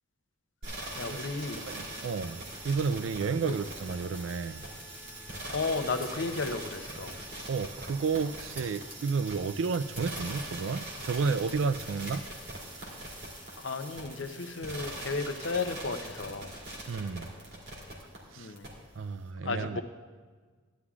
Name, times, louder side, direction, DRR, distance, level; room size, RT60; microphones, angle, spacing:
sound 1, 0.6-18.2 18.6-18.7, right 1 dB, 55° right, 2.8 m, -42 dB
voice 1, 1.0-1.7 3.4-3.5 5.5-7.2 13.6-16.6 18.4-18.7 19.4-19.8, left 3 dB, 70° left, 8 dB, 0.7 m, -34 dB
voice 2, 1.6-2.4 2.6-4.6 7.5-12.3 16.9-17.3 18.3-18.5 19.0-19.8, right 5 dB, 80° right, 13 dB, 0.4 m, -31 dB
sound 2, 3.9-6.1 6.6-10.8 11.1-12.3, left 1 dB, 5° right, 1.5 m, -50 dB
15.0 x 11.5 x 2.4 m, 1.5 s
head